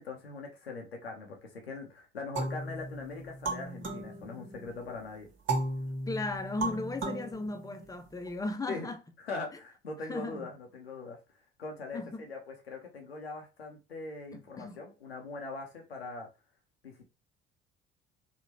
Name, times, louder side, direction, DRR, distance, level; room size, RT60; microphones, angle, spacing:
voice 1, 0.0-5.3 8.7-8.9 9.2-11.2 11.6-16.3 16.8-17.1, left 3 dB, 90° left, 0.5 m, -41 dB
sound 1, 2.4-4.8 5.5-8.3, right 2 dB, 40° right, 1.3 m, -36 dB
voice 2, 6.1-9.0 10.1-10.5 11.9-12.2 14.3-14.8, left 2 dB, 10° left, 0.5 m, -36 dB
3.6 x 2.0 x 3.0 m
figure-of-eight pair, 55°, 30 cm